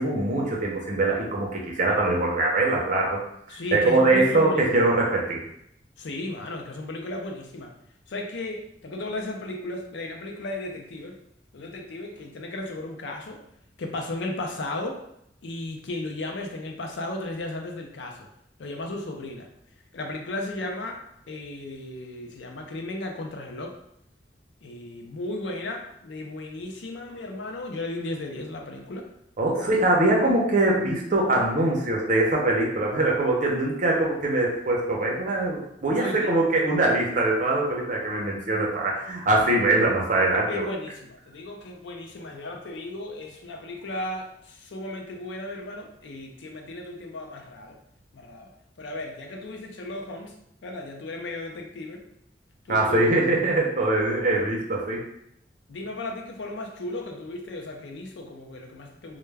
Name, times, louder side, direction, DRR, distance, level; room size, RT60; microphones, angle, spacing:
voice 1, 0.0-3.2 3.7-5.4 29.4-40.6 52.7-55.0, right 2 dB, 45° right, -2 dB, 0.6 m, -23 dB
voice 2, 3.5-4.9 6.0-7.8 8.1-11.2 11.5-13.4 13.8-15.0 15.4-18.3 18.6-19.5 19.9-23.7 24.6-29.1 29.6-29.7 36.0-36.3 40.5-47.8 48.1-48.5 48.8-50.4 50.6-52.0 52.7-53.1 55.7-59.2, left 2 dB, 85° left, 2 dB, 0.5 m, -35 dB
2.2 x 2.1 x 3.2 m, 0.75 s
head